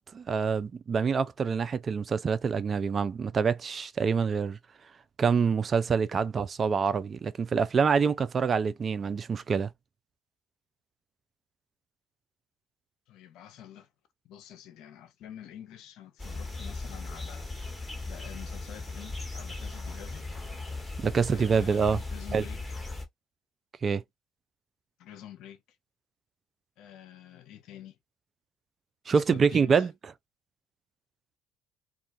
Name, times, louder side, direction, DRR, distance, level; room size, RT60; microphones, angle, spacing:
voice 1, 0.1-4.6 5.2-9.7 21.0-22.0 22.3-22.4 23.8-24.0 29.1-29.9, right 5 dB, 40° right, 0.4 m, -26 dB
voice 2, 13.1-13.9 14.2-17.8 18.1-20.3 21.3-22.8 25.0-25.6 26.8-28.0 29.1-29.9, left 11 dB, 65° left, 0.6 m, -48 dB
sound 1, 16.2-23.0, left 3 dB, 10° left, 1.2 m, -38 dB
2.3 x 2.2 x 2.5 m
hypercardioid pair, 65°, 0 cm